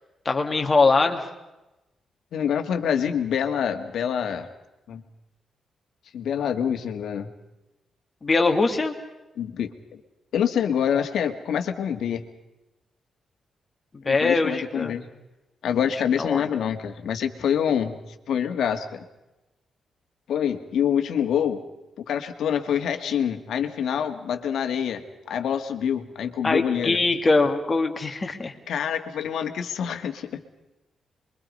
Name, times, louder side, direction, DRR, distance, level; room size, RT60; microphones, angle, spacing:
voice 1, 0.3-1.2 8.2-8.9 14.0-15.0 16.2-16.4 26.4-28.5, left 3 dB, 25° left, 4 dB, 2.2 m, -22 dB
voice 2, 2.3-4.5 4.9-5.0 6.1-7.3 9.4-9.7 10.3-12.2 14.0-15.1 15.6-18.0 18.3-19.0 20.3-21.6 22.0-27.0 28.7-30.4, left 8 dB, 75° left, 7 dB, 1.9 m, -26 dB
27.0 x 23.0 x 5.4 m, 0.99 s
wide cardioid pair, 160°, 0 cm